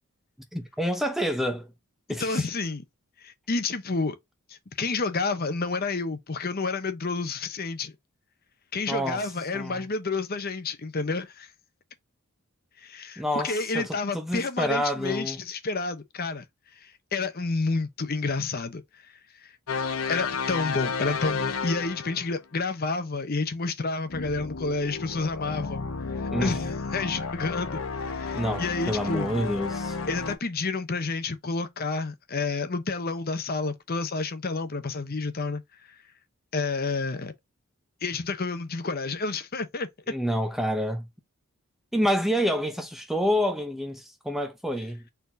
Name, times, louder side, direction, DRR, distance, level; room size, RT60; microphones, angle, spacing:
voice 1, 0.5-1.7 2.1-2.4 8.9-9.8 13.2-15.4 26.3-26.6 28.3-30.0 40.1-41.1 41.9-45.0, equal, ahead, 0.7 m, -28 dB
voice 2, 2.2-2.8 3.2-4.2 4.5-7.9 8.7-11.5 12.8-16.4 16.8-19.1 19.4-19.5 20.1-25.9 26.2-29.3 30.1-35.6 36.5-37.3 38.0-39.9, left 3 dB, 45° left, 0.7 m, -30 dB
sound 1, 19.7-22.3 24.1-30.4, left 5 dB, 65° left, 0.9 m, -32 dB
4.4 x 3.9 x 2.6 m
head